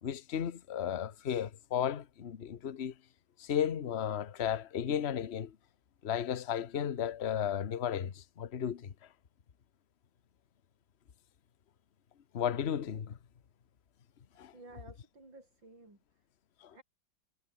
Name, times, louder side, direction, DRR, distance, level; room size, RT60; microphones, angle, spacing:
voice 1, 0.0-2.9 3.4-5.5 6.0-8.9 12.3-13.2 14.4-14.5 16.6-16.7, left 9 dB, 40° left, 1.0 m, -34 dB
voice 2, 14.3-16.2 16.7-16.8, right 2 dB, 55° right, 8.4 m, -55 dB
omnidirectional pair, 2.4 m